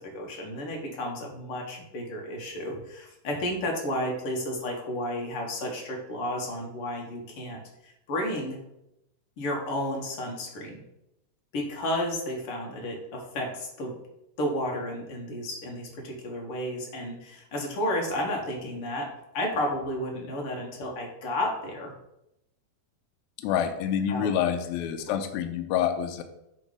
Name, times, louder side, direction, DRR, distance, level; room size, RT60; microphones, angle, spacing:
voice 1, 0.0-8.6 9.4-10.8 11.5-14.0 14.4-19.1 19.3-21.9 24.1-24.3 25.0-25.1, left 1 dB, 60° left, 0 dB, 1.6 m, -32 dB
voice 2, 23.4-26.2, left 9 dB, 80° left, 6 dB, 1.9 m, -27 dB
8.0 x 3.3 x 4.8 m, 0.85 s
omnidirectional pair, 3.7 m